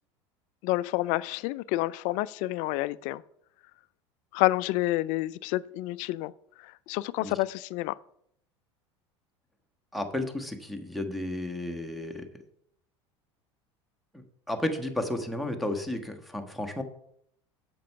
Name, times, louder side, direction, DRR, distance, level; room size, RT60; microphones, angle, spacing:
voice 1, 0.6-3.2 4.3-6.3 6.6-8.0, left 18 dB, 55° left, 19 dB, 0.4 m, -29 dB
voice 2, 9.9-12.3 14.1-16.8, left 1 dB, ahead, 7 dB, 1.3 m, -33 dB
7.5 x 5.9 x 5.6 m, 0.71 s
hypercardioid pair, 85°, 15 cm